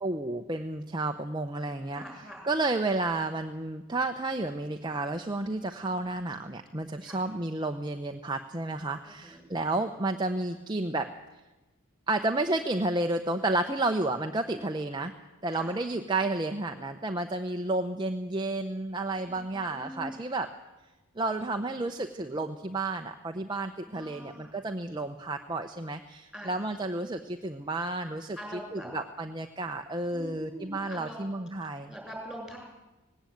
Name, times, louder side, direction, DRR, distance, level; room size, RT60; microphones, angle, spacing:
voice 1, 0.0-11.1 12.1-15.1 15.4-20.5 21.2-28.4 28.7-31.9, right 2 dB, 20° right, 5 dB, 0.8 m, -31 dB
voice 2, 1.9-2.4 7.0-7.2 9.1-9.4 14.5-14.6 15.5-15.7 19.2-20.2 23.9-24.5 26.3-26.7 28.4-28.9 30.1-31.4 31.9-32.6, equal, ahead, 0 dB, 7.1 m, -43 dB
19.0 x 17.0 x 9.1 m, 1.1 s
head